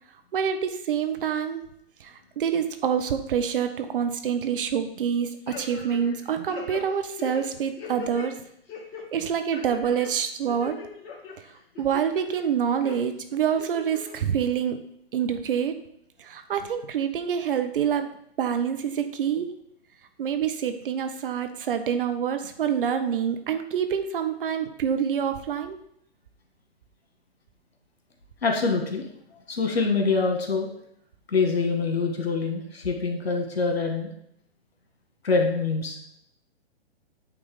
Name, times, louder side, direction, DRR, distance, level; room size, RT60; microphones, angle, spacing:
voice 1, 0.3-1.6 2.0-8.3 9.1-10.8 11.8-14.8 15.1-15.8 16.2-18.1 18.4-19.5 20.2-25.8, right 8 dB, 60° right, 8 dB, 1.0 m, -26 dB
sound 1, 5.5-6.2 6.5-8.3 8.7-9.0 9.5-10.1 10.5-11.3 11.8-12.4 12.8-13.0 13.6-14.1 14.5-14.6, left 5 dB, 35° left, 1.8 m, -39 dB
voice 2, 28.4-29.1 29.3-30.7 31.3-34.1 35.2-36.0, left 4 dB, 75° left, 4 dB, 1.8 m, -25 dB
8.8 x 3.5 x 5.0 m, 0.72 s
hypercardioid pair, 125°, 31 cm